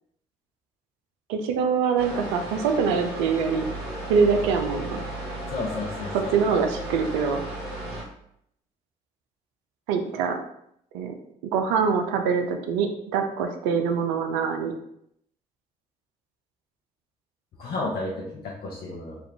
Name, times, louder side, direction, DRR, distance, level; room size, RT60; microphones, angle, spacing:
voice 1, 1.3-3.7 4.1-5.0 6.1-7.4 9.9-10.4 10.9-11.1 11.4-14.7, right 6 dB, 85° right, 5 dB, 0.4 m, -24 dB
sound 1, 2.0-8.0, right 1 dB, 65° right, 1.2 m, -34 dB
voice 2, 5.5-6.3 17.6-19.2, left 2 dB, 65° left, -4 dB, 0.7 m, -32 dB
3.5 x 2.3 x 3.3 m, 0.74 s
hypercardioid pair, 45°, 18 cm